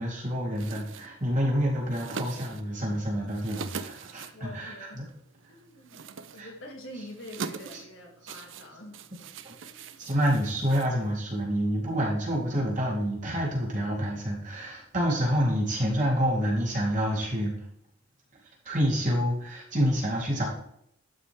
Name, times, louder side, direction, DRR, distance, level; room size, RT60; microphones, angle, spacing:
voice 1, 0.0-5.0 6.4-6.5 7.7-7.8 8.2-8.3 9.4-9.5 10.0-17.5 18.6-20.5, equal, 40° right, -4 dB, 3.2 m, -28 dB
sound 1, 0.5-11.4, right 5 dB, 65° right, 0.6 m, -43 dB
voice 2, 4.3-5.1 5.5-9.0 9.6-10.0, left 1 dB, 65° left, 0 dB, 2.5 m, -46 dB
12.0 x 5.4 x 3.5 m, 0.72 s
head